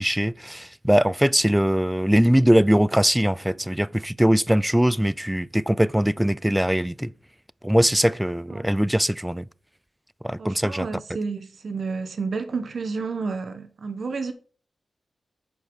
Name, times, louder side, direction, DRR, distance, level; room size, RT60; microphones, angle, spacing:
voice 1, 0.0-7.1 7.6-9.4 10.2-10.9, equal, 5° right, 0.3 m, -21 dB
voice 2, 10.4-14.3, right 4 dB, 65° right, 1.1 m, -30 dB
10.5 x 4.8 x 5.3 m
cardioid pair, 60°, 0 cm